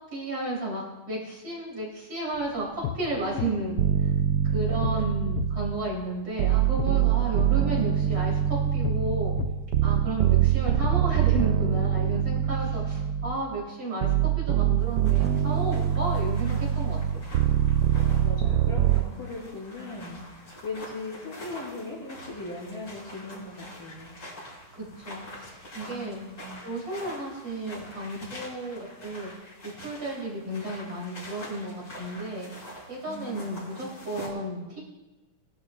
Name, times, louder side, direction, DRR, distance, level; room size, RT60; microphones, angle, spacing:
voice 1, 0.1-4.1 4.5-9.4 9.8-17.3 24.7-26.2 26.6-29.3 29.6-32.5 32.9-34.8, right 2 dB, 60° right, -4 dB, 4.2 m, -33 dB
sound 1, 2.3-12.3, left 9 dB, 90° left, 0.8 m, -37 dB
sound 2, 3.8-5.9 6.4-13.5 14.0-19.0, right 10 dB, 80° right, 0.9 m, -24 dB
voice 2, 4.5-4.8 7.1-8.0 10.6-11.1 12.6-12.7 18.0-24.1 25.9-26.6 33.1-33.7, left 2 dB, 60° left, -12 dB, 5.9 m, -40 dB
sound 3, 14.8-34.3, equal, 45° left, 5.3 m, -45 dB
20.0 x 11.5 x 2.4 m, 1.1 s
omnidirectional pair, 2.3 m